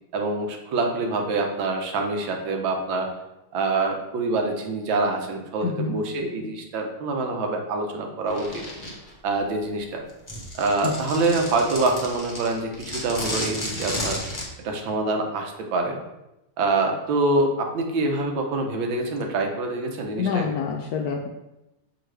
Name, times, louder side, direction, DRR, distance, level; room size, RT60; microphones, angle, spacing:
voice 1, 0.1-3.1 3.5-8.6 9.2-10.0 10.6-14.2 14.6-16.0 16.6-20.5, right 3 dB, 85° right, 3 dB, 1.7 m, -25 dB
voice 2, 5.6-6.0 10.8-11.0 20.2-21.3, left 5 dB, 75° left, 2 dB, 0.9 m, -27 dB
sound 1, 8.3-9.1 10.1-14.5, left 1 dB, 15° left, 0.7 m, -33 dB
6.4 x 4.8 x 3.3 m, 0.94 s
omnidirectional pair, 2.0 m